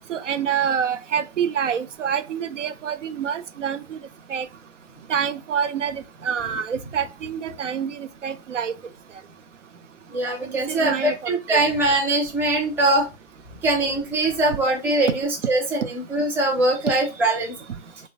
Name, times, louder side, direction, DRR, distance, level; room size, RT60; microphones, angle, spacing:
voice 1, 0.1-4.0 4.3-4.5 5.1-8.7 10.7-11.6, right 8 dB, 85° right, 0.5 m, -27 dB
voice 2, 10.1-13.1 13.6-17.5, right 2 dB, 5° right, 0.5 m, -22 dB
3.3 x 2.1 x 3.9 m
figure-of-eight pair, 125°, 36 cm